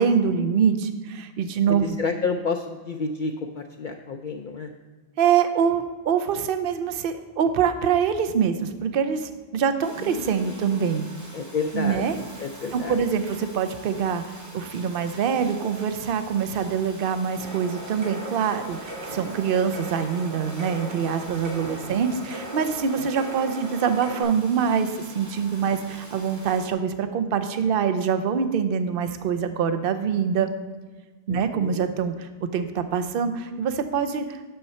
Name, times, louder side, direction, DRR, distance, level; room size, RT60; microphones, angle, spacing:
voice 1, 0.0-2.0 5.2-11.1 11.7-12.2 12.7-30.5 31.3-34.4, right 7 dB, 65° right, 9 dB, 0.8 m, -24 dB
voice 2, 1.7-4.7 10.0-11.0 11.3-12.0 12.4-12.9 21.8-21.9 31.3-31.8, left 4 dB, 60° left, 4 dB, 0.6 m, -30 dB
Domestic sounds home sounds, 9.8-26.7, right 1 dB, 20° right, 1.0 m, -45 dB
sound 1, 17.4-24.2, right 2 dB, 90° right, 3.1 m, -38 dB
8.9 x 6.7 x 4.3 m, 1.3 s
omnidirectional pair, 1.1 m